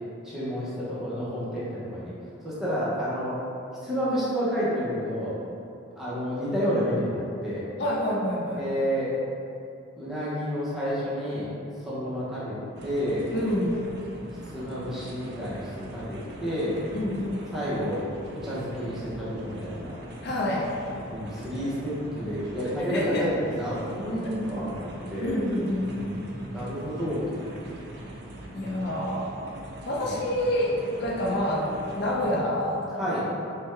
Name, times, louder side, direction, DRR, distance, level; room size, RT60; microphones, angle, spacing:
voice 1, 0.2-2.1 2.4-3.4 3.8-5.4 6.0-7.7 8.5-9.1 10.0-11.5 11.8-12.5 12.8-13.3 14.4-16.8 17.5-19.9 21.0-25.3 25.8-27.4 30.0-30.2 33.0-33.2, equal, ahead, -11 dB, 0.7 m, -30 dB
voice 2, 7.8-8.6 13.3-13.8 16.9-17.4 20.2-20.7 22.9-23.3 24.2-24.3 25.2-26.1 28.5-29.4 29.9-32.9, left 1 dB, 50° left, -3 dB, 0.5 m, -27 dB
sound 1, 12.8-32.3, right 1 dB, 55° right, 0.4 m, -42 dB
3.3 x 2.2 x 3.2 m, 2.6 s
head